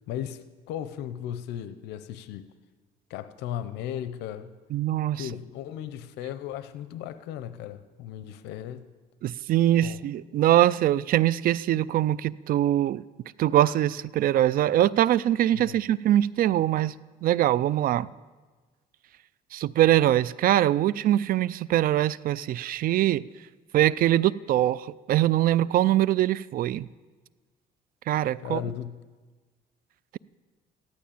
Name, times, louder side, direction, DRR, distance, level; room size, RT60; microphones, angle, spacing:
voice 1, 0.1-2.5 3.1-4.5 5.1-8.9 9.8-10.0 15.5-15.8 28.4-29.0, left 10 dB, 90° left, 0.8 m, -36 dB
voice 2, 4.7-5.3 9.2-13.0 13.4-16.9 17.2-18.1 19.5-23.2 23.7-26.9 28.1-28.6, right 13 dB, 60° right, 0.5 m, -23 dB
14.5 x 11.5 x 8.6 m
cardioid pair, 110°, 17 cm